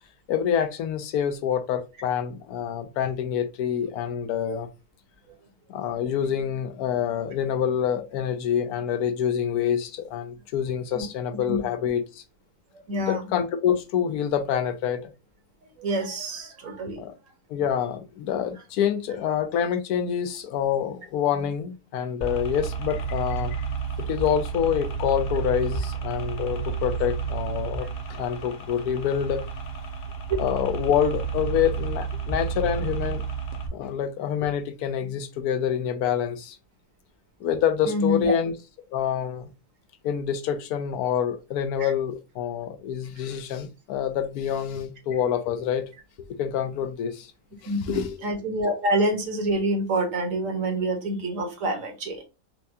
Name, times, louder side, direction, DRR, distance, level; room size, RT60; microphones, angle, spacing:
voice 1, 0.3-4.7 5.7-12.2 13.0-15.0 17.0-17.1 17.5-23.6 24.0-29.4 30.4-33.2 33.7-36.6 37.4-38.5 38.9-39.5 40.0-45.8 46.2-47.3 47.6-48.2, left 8 dB, 85° left, 1.1 m, -27 dB
voice 2, 12.9-13.2 15.8-17.0 27.8-27.9 37.9-38.3 41.8-41.9 47.7-52.2, right 1 dB, 60° right, 1.4 m, -27 dB
sound 1, 22.2-33.7, right 5 dB, 55° left, 0.6 m, -31 dB
4.5 x 2.2 x 2.6 m
omnidirectional pair, 1.6 m